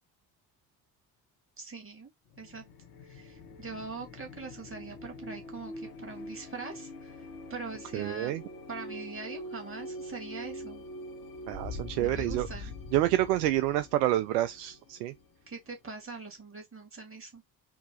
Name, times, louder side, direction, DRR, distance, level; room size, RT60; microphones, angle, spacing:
voice 1, 1.6-2.1 2.4-2.6 3.1-8.3 8.7-10.8 12.0-12.7 15.5-17.4, right 4 dB, 25° right, 2.7 m, -42 dB
sound 1, 2.3-15.8, left 1 dB, 70° left, 1.3 m, -44 dB
voice 2, 7.9-8.4 11.5-12.5 12.9-15.1, right 14 dB, 70° right, 0.6 m, -28 dB
4.6 x 2.8 x 3.9 m
figure-of-eight pair, 50°, 50 cm